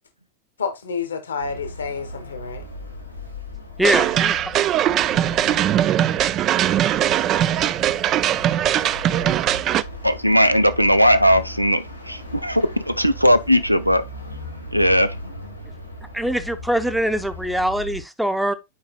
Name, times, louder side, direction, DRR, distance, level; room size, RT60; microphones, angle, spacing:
voice 1, 0.6-2.6, left 5 dB, 70° left, 1.4 m, -29 dB
sound 1, 1.4-18.0, left 1 dB, 90° left, 2.0 m, -37 dB
voice 2, 3.8-4.4 16.1-18.5, equal, ahead, 0.8 m, -23 dB
sound 2, 3.8-9.8, right 11 dB, 35° right, 0.4 m, -20 dB
voice 3, 10.0-14.0 14.7-15.1, equal, 90° right, 0.6 m, -18 dB
9.5 x 4.9 x 2.3 m
figure-of-eight pair, 90°, 0 cm